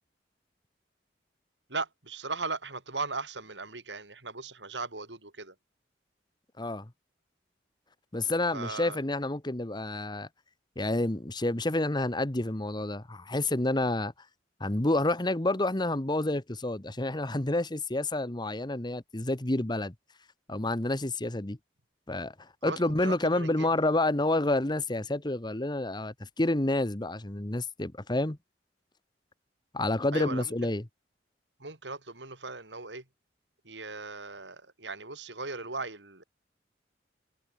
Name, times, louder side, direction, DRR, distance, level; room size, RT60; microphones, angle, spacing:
voice 1, 1.7-5.5 8.5-9.0 22.6-23.7 30.1-30.7 31.6-33.0 33.6-36.2, right 3 dB, 85° right, 6.5 m, -38 dB
voice 2, 6.6-6.9 8.1-10.3 10.8-14.1 14.6-19.9 20.5-21.6 22.1-28.4 29.7-30.8, left 2 dB, 25° left, 1.3 m, -29 dB
head